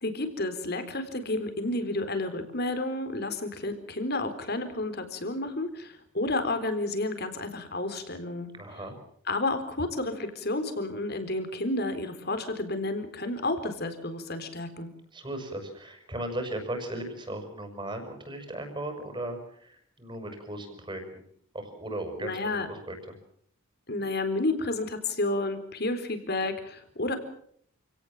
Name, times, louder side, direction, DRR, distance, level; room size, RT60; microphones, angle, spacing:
voice 1, 0.0-8.5 9.3-14.9 22.2-22.7 23.9-27.2, left 2 dB, 50° left, 9 dB, 4.0 m, -31 dB
voice 2, 8.5-9.0 15.1-21.2 21.5-23.1, right 1 dB, 20° right, 6 dB, 6.0 m, -37 dB
28.5 x 18.0 x 7.3 m, 0.66 s
head